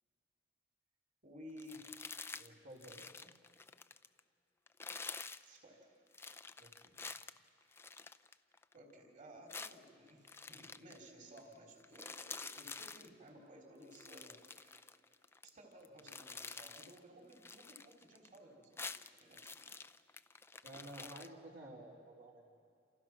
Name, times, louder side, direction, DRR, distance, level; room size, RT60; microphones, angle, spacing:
voice 1, 1.2-2.0 5.4-5.9 8.7-14.9 15.4-19.7, equal, 45° right, 1 dB, 3.8 m, -57 dB
sound 1, 1.6-2.5 2.8-4.2 4.7-5.5 6.1-8.8 9.5-11.0 11.4-11.5 11.8-13.1 13.8-15.5 15.8-17.0 17.3-18.4 18.6-21.3, left 4 dB, 15° left, 0.5 m, -49 dB
voice 2, 2.3-3.3 6.6-7.0 20.6-22.6, right 1 dB, 60° right, -3 dB, 3.4 m, -53 dB
28.5 x 28.0 x 6.1 m, 2.5 s
head